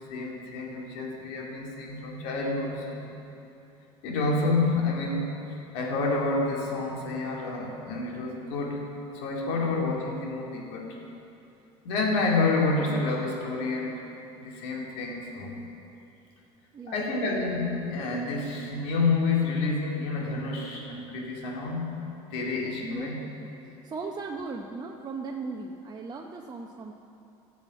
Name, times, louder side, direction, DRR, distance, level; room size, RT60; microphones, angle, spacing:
voice 1, 0.0-3.1 4.0-10.9 11.8-14.0 14.4-15.5 16.9-21.9 22.3-23.2, left 3 dB, 80° left, -1 dB, 2.4 m, -29 dB
voice 2, 9.4-9.7 16.7-17.2 22.8-26.9, right 4 dB, 30° right, 1 dB, 0.8 m, -38 dB
12.0 x 7.2 x 8.1 m, 2.9 s
supercardioid pair, 110°, 14 cm